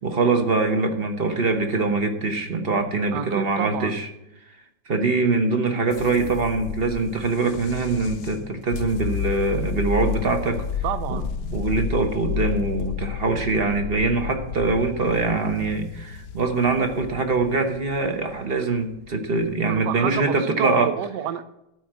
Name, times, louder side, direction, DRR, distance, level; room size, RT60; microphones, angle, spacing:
voice 1, 0.0-4.1 4.9-10.6 11.1-11.2 11.5-20.9, right 3 dB, 40° right, 6 dB, 1.0 m, -23 dB
voice 2, 3.1-3.9 10.8-11.3 13.3-13.5 19.7-21.4, right 10 dB, 70° right, 12 dB, 1.2 m, -29 dB
sound 1, 5.9-20.1, left 7 dB, 70° left, 1.2 m, -32 dB
12.5 x 4.5 x 7.4 m, 0.87 s
omnidirectional pair, 2.0 m